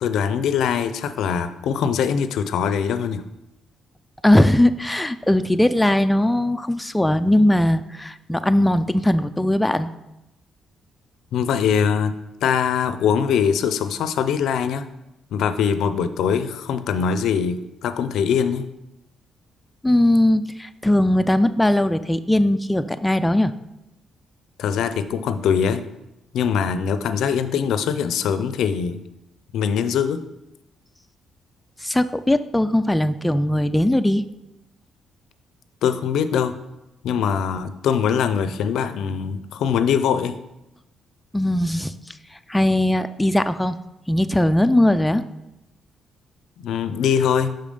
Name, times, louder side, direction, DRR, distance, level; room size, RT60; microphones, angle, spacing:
voice 1, 0.0-3.2 11.3-12.1 12.4-14.9 15.3-18.7 24.6-25.8 26.3-29.0 29.5-30.2 35.8-36.6 37.0-40.4 46.6-47.6, left 7 dB, 75° left, 11 dB, 0.4 m, -22 dB
voice 2, 4.2-9.9 19.8-23.5 31.8-34.3 41.3-41.9 42.5-43.8 44.1-45.2, left 1 dB, 10° left, 10 dB, 0.3 m, -19 dB
5.6 x 5.1 x 5.3 m, 0.92 s
cardioid pair, 90°, 0 cm